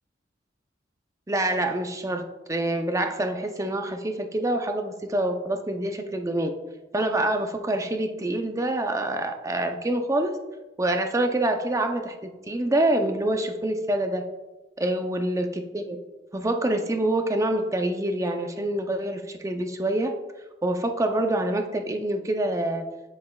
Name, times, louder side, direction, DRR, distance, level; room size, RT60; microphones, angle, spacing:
voice 1, 1.3-6.5 6.9-10.4 10.8-14.2 14.8-16.0 16.3-20.1 20.6-22.9, right 1 dB, 15° right, 5 dB, 0.5 m, -26 dB
7.6 x 7.6 x 2.3 m, 1.1 s
head